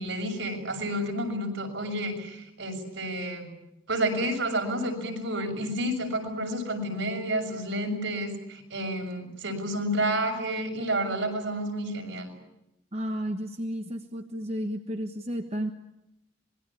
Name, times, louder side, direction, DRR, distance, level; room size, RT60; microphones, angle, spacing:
voice 1, 0.0-3.5 3.9-12.3, right 1 dB, 75° right, 2 dB, 6.6 m, -30 dB
voice 2, 12.9-15.7, equal, 35° right, 5 dB, 1.4 m, -32 dB
26.0 x 22.0 x 8.7 m, 0.87 s
head